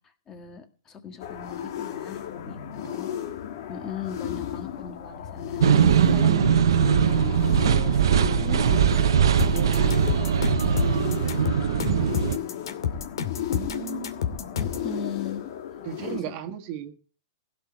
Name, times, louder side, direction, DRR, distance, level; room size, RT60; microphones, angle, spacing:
voice 1, 0.0-3.1 3.7-13.4 14.6-15.4 16.0-16.3, left 6 dB, 20° left, 1.8 m, -40 dB
sound 1, 1.2-16.2, left 10 dB, 55° left, 2.3 m, -34 dB
voice 2, 2.8-3.1 13.5-14.2 15.8-17.0, right 10 dB, 40° right, 1.7 m, -36 dB
sound 2, 5.6-12.4, right 8 dB, 75° right, 1.0 m, -21 dB
sound 3, 9.4-14.9, left 8 dB, 70° left, 2.5 m, -29 dB
16.5 x 6.1 x 8.6 m
hypercardioid pair, 140°, 2 cm